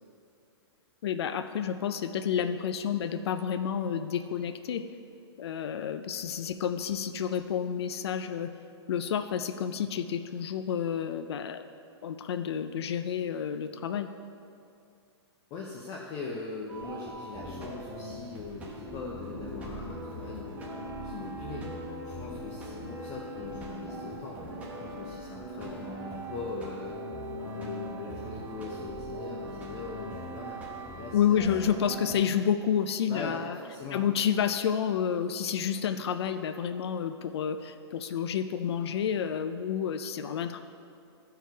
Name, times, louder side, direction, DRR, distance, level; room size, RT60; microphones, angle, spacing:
voice 1, 1.0-4.8 5.4-8.5 8.9-11.7 12.0-14.1 31.1-33.6 33.9-40.6, left 8 dB, 65° left, 9 dB, 0.4 m, -30 dB
voice 2, 15.5-20.7 21.0-27.0 27.4-30.6 31.0-31.8 33.1-34.0, left 3 dB, 20° left, -2 dB, 0.5 m, -41 dB
sound 1, 16.7-32.2, equal, 10° right, 0.9 m, -40 dB
Wind instrument woodwind instrument, 20.5-26.7, right 5 dB, 45° right, 1.5 m, -45 dB
14.0 x 4.7 x 4.6 m, 2.5 s
hypercardioid pair, 170°, 15 cm